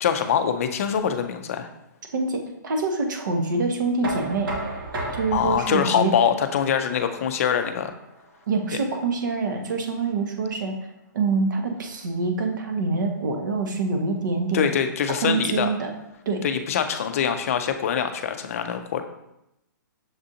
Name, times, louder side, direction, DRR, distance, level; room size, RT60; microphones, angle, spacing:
voice 1, 0.0-1.7 5.3-7.9 14.5-15.7 16.4-19.0, left 8 dB, 45° left, 8 dB, 0.4 m, -24 dB
voice 2, 2.1-4.5 5.1-6.1 8.5-10.7 11.1-14.7 15.2-15.9 16.3-16.4, right 3 dB, 65° right, 4 dB, 0.8 m, -25 dB
Knock, 4.0-9.8, right 2 dB, 85° right, 1.3 m, -36 dB
6.5 x 2.5 x 2.7 m, 0.85 s
hypercardioid pair, 165°, 11 cm